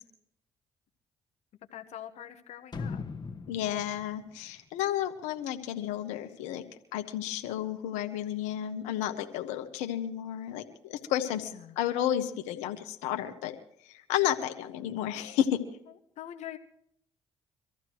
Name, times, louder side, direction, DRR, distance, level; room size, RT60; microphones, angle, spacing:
voice 1, 1.7-3.0 11.4-11.7 16.2-16.6, left 11 dB, 70° left, 5 dB, 1.3 m, -43 dB
sound 1, 2.7-5.5 5.9-6.0, left 4 dB, 35° left, 1.7 m, -40 dB
voice 2, 3.5-6.6 6.9-13.6 13.9-15.6, left 11 dB, 90° left, 6 dB, 1.4 m, -32 dB
24.5 x 14.5 x 3.1 m, 0.73 s
supercardioid pair, 60°, 12 cm